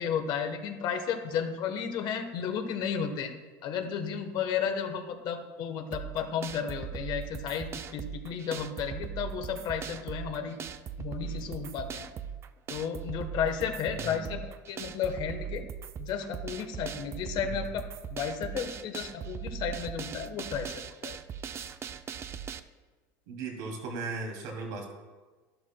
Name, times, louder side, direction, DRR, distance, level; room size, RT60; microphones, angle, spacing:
voice 1, 0.0-3.3 3.6-10.6 11.0-12.0 12.7-15.7 16.0-17.8 18.1-20.7 21.0-21.2, left 7 dB, 50° left, 7 dB, 1.1 m, -33 dB
sound 1, 5.9-22.6, right 8 dB, 25° right, 0.4 m, -39 dB
voice 2, 13.9-14.4 17.4-17.7 23.3-24.8, right 3 dB, 85° right, 0 dB, 2.6 m, -37 dB
12.0 x 12.0 x 2.2 m, 1.3 s
supercardioid pair, 135°, 10 cm